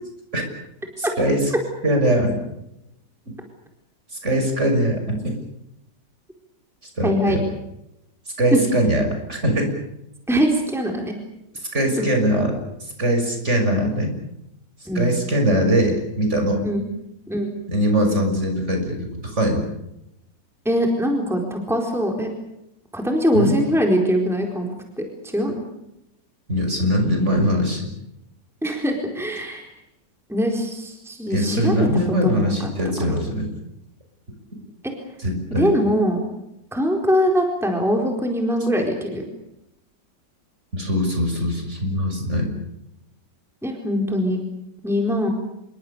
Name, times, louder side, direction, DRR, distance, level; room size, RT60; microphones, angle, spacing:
voice 1, 1.0-1.5 1.8-2.4 4.1-5.4 6.8-7.4 8.4-9.7 11.7-12.6 13.0-14.2 14.9-16.6 17.7-19.7 23.3-23.6 26.5-27.9 31.3-33.5 35.2-35.7 40.7-42.5, equal, 40° right, 4 dB, 6.7 m, -21 dB
voice 2, 7.0-7.4 8.5-8.6 10.3-11.1 14.9-15.2 16.6-16.8 17.3-17.5 20.6-22.3 22.9-25.7 28.6-29.7 30.3-31.7 32.2-32.7 33.0-33.2 34.8-34.9 35.6-36.3 36.7-39.2 43.6-44.4 44.8-45.3, equal, ahead, 2 dB, 4.3 m, -22 dB
27.5 x 24.0 x 7.0 m, 0.85 s
omnidirectional pair, 1.9 m